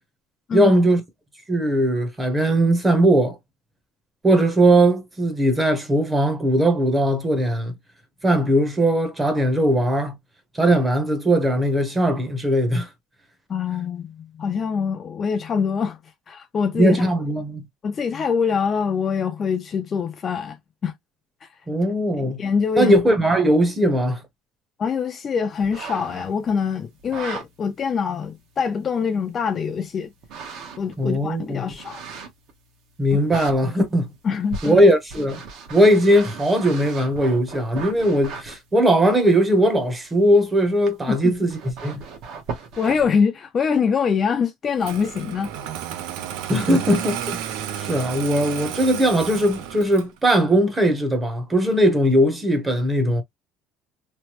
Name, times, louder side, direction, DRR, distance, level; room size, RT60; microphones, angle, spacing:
voice 1, 0.5-1.0 1.5-3.4 4.2-7.7 8.2-10.2 10.5-12.9 16.7-17.6 21.7-22.4 22.7-24.2 31.0-31.7 33.0-34.1 34.6-35.4 35.7-42.0 46.5-47.4 47.8-53.2, right 1 dB, 15° right, 0.8 m, -19 dB
voice 2, 13.5-16.0 16.3-17.0 17.8-20.6 20.8-20.9 22.2-23.0 24.8-30.1 30.8-32.0 33.1-33.2 34.2-34.8 41.1-41.4 42.8-45.5, left 6 dB, 30° left, 0.4 m, -24 dB
sound 1, 25.6-26.5 27.0-27.5 28.2-28.3 30.2-31.0 31.7-32.5 33.1-33.6 34.5-38.6 40.9-41.0 41.3-43.1, right 5 dB, 55° right, 1.0 m, -36 dB
Engine starting, 44.8-50.2, right 10 dB, 85° right, 0.5 m, -32 dB
3.1 x 2.1 x 2.9 m
cardioid pair, 150°, 0 cm